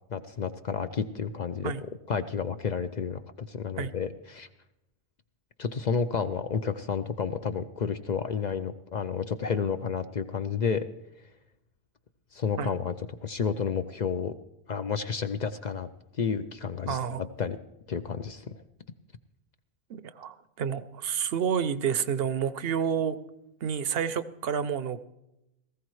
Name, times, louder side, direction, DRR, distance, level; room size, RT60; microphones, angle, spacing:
voice 1, 0.1-1.7 2.1-3.2 3.5-4.5 5.6-10.9 12.3-12.9 13.2-14.3 14.7-15.9 16.2-17.6 17.9-18.5, left 6 dB, 50° left, 10 dB, 0.6 m, -31 dB
voice 2, 16.9-17.2 19.9-23.2 23.6-25.0, right 7 dB, 70° right, 13 dB, 0.8 m, -29 dB
18.5 x 15.0 x 3.1 m, 0.88 s
omnidirectional pair, 1.1 m